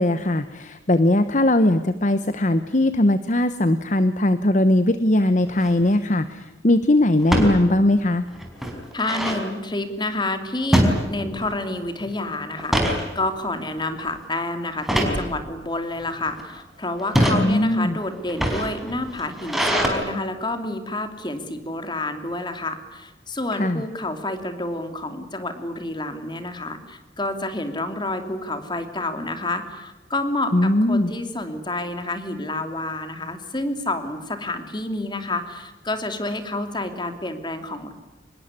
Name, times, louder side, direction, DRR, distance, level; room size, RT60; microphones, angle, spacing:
voice 1, 0.0-8.3 17.3-18.0 23.6-23.8 30.5-31.1, left 1 dB, 40° left, 12 dB, 1.0 m, -19 dB
sound 1, 5.5-5.8 7.2-7.5 8.0-8.1 8.4-9.4 10.7-11.5 11.9-12.1 12.5-13.0 13.6-13.9 14.8-15.2 16.0-16.4 17.0-17.4 18.2-19.9, equal, ahead, 4.7 m, -22 dB
voice 2, 8.9-37.9, left 2 dB, 25° left, 8 dB, 2.8 m, -29 dB
25.5 x 21.0 x 9.8 m, 1.1 s
head